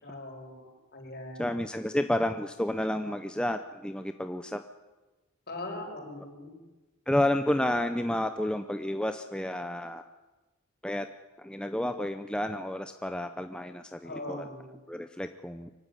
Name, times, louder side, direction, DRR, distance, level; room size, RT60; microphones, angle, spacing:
voice 1, 0.0-1.5 5.5-6.6 14.0-14.7, left 2 dB, 45° left, 2 dB, 6.0 m, -41 dB
voice 2, 1.4-4.6 7.1-10.0 10.8-11.1 11.4-14.5 14.9-15.7, left 1 dB, 5° left, 8 dB, 0.7 m, -30 dB
24.0 x 16.0 x 9.9 m, 1.1 s
head